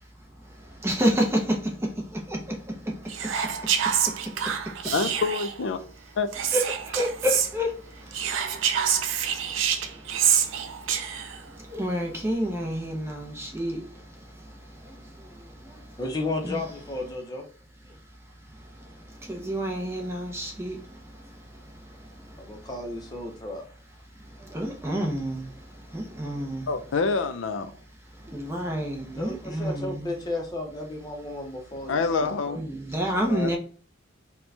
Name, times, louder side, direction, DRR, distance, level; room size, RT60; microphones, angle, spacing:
voice 1, 0.4-4.8 6.5-16.0 16.4-16.6 17.9-18.0 18.5-22.7 24.2-26.7 28.1-30.1 32.5-33.6, equal, 15° right, 0.6 m, -31 dB
Whispering, 3.1-5.6 6.3-7.5 8.1-11.4, right 8 dB, 75° right, 0.4 m, -26 dB
voice 2, 4.9-5.8 6.2-6.3 26.7-27.7 31.9-32.6 33.1-33.6, left 4 dB, 75° left, 0.4 m, -26 dB
voice 3, 16.0-17.4 22.4-23.6 29.1-32.6, left 2 dB, 20° left, 0.7 m, -33 dB
4.4 x 2.2 x 2.6 m
head